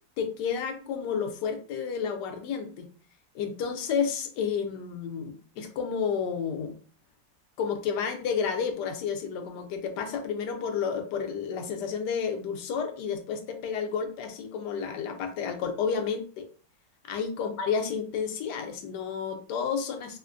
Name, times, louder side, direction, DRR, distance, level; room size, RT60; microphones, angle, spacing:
voice 1, 0.2-2.9 3.3-6.7 7.6-16.5 17.1-20.2, left 6 dB, 70° left, 5 dB, 1.1 m, -31 dB
4.2 x 2.1 x 2.5 m, 0.40 s
omnidirectional pair, 2.1 m